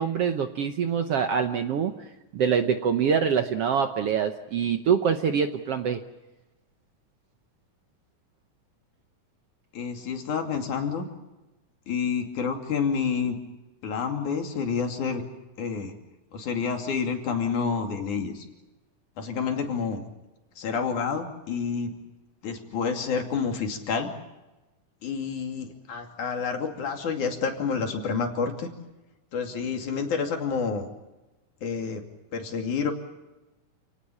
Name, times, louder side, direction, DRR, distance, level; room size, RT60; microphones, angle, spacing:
voice 1, 0.0-1.9 2.3-6.0, right 7 dB, 65° right, 7 dB, 1.6 m, -25 dB
voice 2, 9.7-11.1 11.9-13.4 13.8-15.2 15.6-15.9 16.3-18.4 19.2-20.0 20.6-21.9 22.4-24.1 25.0-28.7 29.3-30.9 31.6-32.0 32.3-32.9, left 5 dB, 70° left, 4 dB, 4.0 m, -29 dB
28.5 x 18.0 x 8.7 m, 1.1 s
omnidirectional pair, 3.7 m